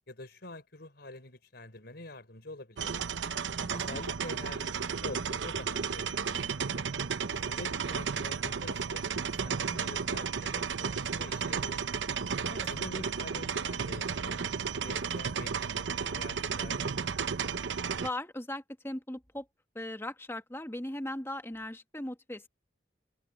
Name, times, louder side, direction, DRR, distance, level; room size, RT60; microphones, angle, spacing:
voice 1, 0.1-3.0 3.7-6.8 7.3-9.0 9.4-11.8 12.6-14.5 14.7-17.1, left 2 dB, 60° left, 4.6 m, -46 dB
sound 1, 2.8-18.1, right 6 dB, 90° right, 0.7 m, -33 dB
voice 2, 3.6-4.0 12.5-12.7 18.0-19.5 19.7-22.5, left 1 dB, 15° left, 1.5 m, -38 dB
head